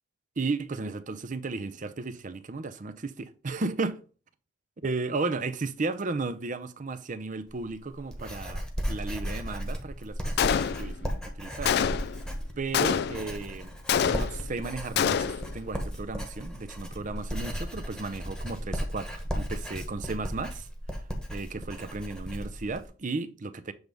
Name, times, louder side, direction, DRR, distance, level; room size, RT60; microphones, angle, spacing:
voice 1, 0.4-4.0 4.8-11.7 12.6-13.7 14.0-20.7 21.3-23.7, right 3 dB, 40° right, 0.6 m, -34 dB
Writing, 7.5-22.9, equal, 5° left, 1.2 m, -35 dB
Gunshot gunfire, 10.4-11.1 11.7-12.2 12.7-13.4 13.9-14.6 15.0-15.5, left 8 dB, 55° left, 0.3 m, -26 dB
7.9 x 3.4 x 5.2 m
head